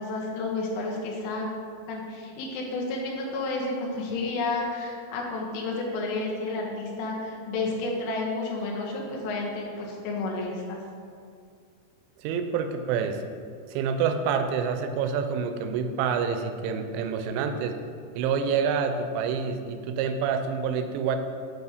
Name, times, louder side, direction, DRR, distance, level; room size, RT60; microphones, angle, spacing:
voice 1, 0.0-1.5 1.9-10.8, left 3 dB, 90° left, -2 dB, 3.7 m, -31 dB
voice 2, 12.2-13.2 13.7-17.8 18.2-21.2, right 6 dB, 80° right, 7 dB, 2.8 m, -27 dB
9.7 x 4.2 x 4.9 m, 2.3 s
omnidirectional pair, 5.5 m